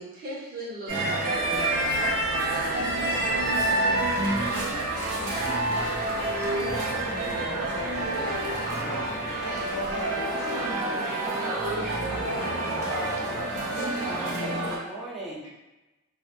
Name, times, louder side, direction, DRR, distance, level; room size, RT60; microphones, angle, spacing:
voice 1, 0.0-1.9 2.3-4.5, right 1 dB, 40° right, -5 dB, 0.7 m, -40 dB
sound 1, 0.9-14.8, right 2 dB, 85° right, 0.7 m, -28 dB
sound 2, 1.3-11.6, equal, 25° left, 0.8 m, -42 dB
voice 2, 7.1-11.2 12.0-13.1, left 2 dB, 75° left, -4 dB, 0.6 m, -39 dB
voice 3, 14.0-15.5, right 1 dB, ahead, -8 dB, 0.5 m, -38 dB
2.4 x 2.1 x 2.8 m, 1.0 s
head